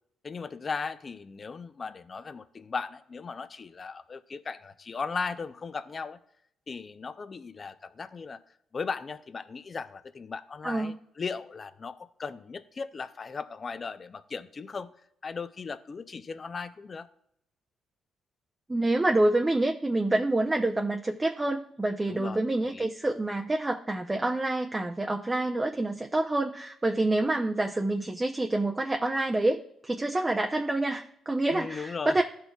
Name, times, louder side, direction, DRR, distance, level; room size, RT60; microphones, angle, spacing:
voice 1, 0.2-6.2 6.7-8.4 8.7-14.9 15.2-17.1 22.1-22.9 31.5-32.2, left 5 dB, 35° left, 11 dB, 0.4 m, -37 dB
voice 2, 18.7-32.2, right 2 dB, 20° right, 2 dB, 0.5 m, -27 dB
12.5 x 4.4 x 2.3 m, 0.73 s
cardioid pair, 90°, 0 cm